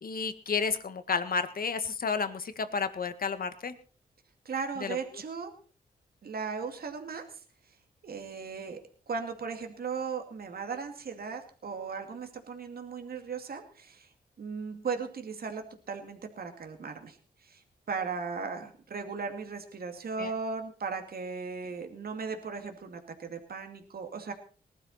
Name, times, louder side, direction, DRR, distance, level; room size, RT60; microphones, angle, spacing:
voice 1, 0.0-3.7 4.8-5.0 20.2-20.3, left 5 dB, 60° left, 10 dB, 1.9 m, -31 dB
voice 2, 4.4-5.5 6.2-7.2 8.0-8.8 9.1-14.1 14.4-17.2 17.4-17.6 17.9-24.3, right 5 dB, 65° right, 5 dB, 2.4 m, -37 dB
20.0 x 12.5 x 4.3 m, 0.39 s
cardioid pair, 75°, 17 cm